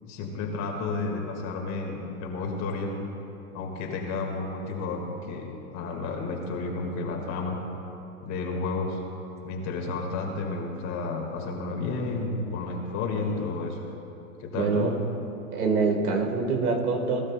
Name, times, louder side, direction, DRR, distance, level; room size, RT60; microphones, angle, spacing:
voice 1, 0.0-3.0 3.5-7.6 8.2-9.0 9.4-13.8 14.4-15.0, left 3 dB, 35° left, 1 dB, 2.3 m, -31 dB
voice 2, 14.5-14.9 15.5-17.3, right 4 dB, 75° right, 3 dB, 2.0 m, -25 dB
20.0 x 12.5 x 2.4 m, 2.9 s
hypercardioid pair, 115°, 44 cm